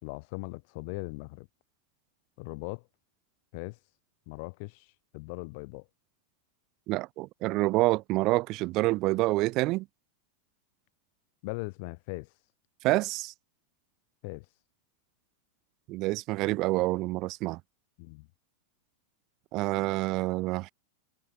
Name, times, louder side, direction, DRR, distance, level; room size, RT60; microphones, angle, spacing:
voice 1, 0.0-1.5 2.4-2.8 3.5-3.8 4.3-4.9 5.1-5.8 11.4-12.3 14.2-14.4 18.0-18.3, left 29 dB, 45° left, 1.7 m, -39 dB
voice 2, 6.9-9.9 12.8-13.3 15.9-17.6 19.5-20.7, right 20 dB, 40° right, 0.4 m, -27 dB
figure-of-eight pair, 90°, 0 cm